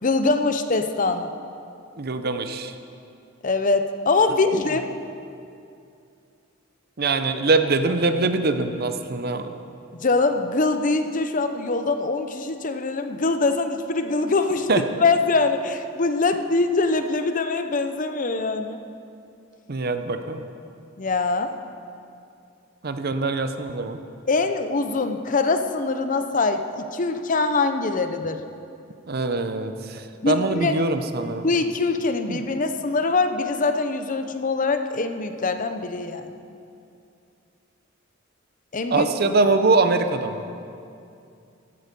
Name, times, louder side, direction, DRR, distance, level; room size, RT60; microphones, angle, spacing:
voice 1, 0.0-1.3 3.4-4.9 10.0-18.8 21.0-21.5 24.3-28.4 30.2-30.8 31.4-36.3 38.7-39.1, left 3 dB, 40° left, 8 dB, 0.7 m, -23 dB
voice 2, 2.0-2.7 4.5-4.6 7.0-9.5 14.7-14.8 19.7-20.5 22.8-24.0 29.1-31.5 32.3-32.4 38.9-40.4, right 3 dB, 50° right, 8 dB, 0.7 m, -23 dB
15.5 x 11.0 x 5.3 m, 2.5 s
head